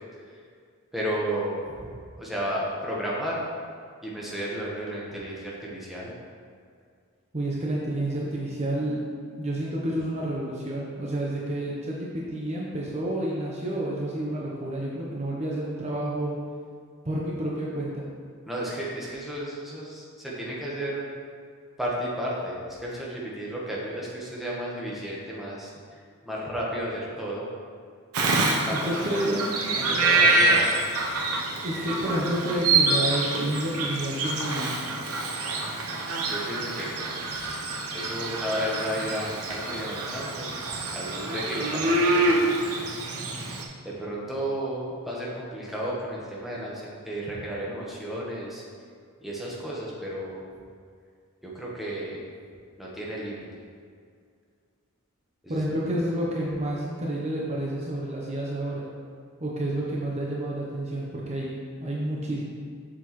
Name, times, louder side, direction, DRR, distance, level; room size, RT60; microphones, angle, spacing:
voice 1, 0.9-1.9 2.2-3.5 4.0-6.1 18.5-21.1 21.8-27.5 28.7-28.8 29.1-29.2 29.7-30.7 36.2-37.1 37.5-37.6 37.9-40.5 40.9-42.3 43.8-48.6 49.2-50.4 51.4-52.2 52.8-53.5 55.4-55.6 56.1-56.2, equal, ahead, -6 dB, 1.1 m, -33 dB
voice 2, 7.3-9.0 9.4-16.4 17.0-18.0 28.7-29.4 31.6-34.8 55.5-58.9 59.4-62.4, right 1 dB, 30° right, -4 dB, 0.7 m, -29 dB
Bird vocalization bird call bird song, 28.1-43.6, right 2 dB, 80° right, 0.8 m, -26 dB
7.3 x 6.1 x 3.1 m, 2.2 s
head